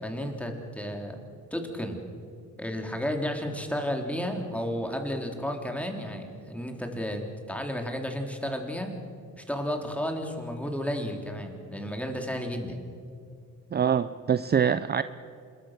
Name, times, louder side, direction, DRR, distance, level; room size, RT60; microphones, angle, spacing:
voice 1, 0.0-1.2 1.5-2.0 2.6-8.9 9.3-12.8, equal, 5° left, 3 dB, 3.7 m, -32 dB
voice 2, 13.7-15.0, right 7 dB, 35° right, 13 dB, 0.6 m, -24 dB
26.5 x 21.5 x 6.7 m, 2.4 s
cardioid pair, 90°, 30 cm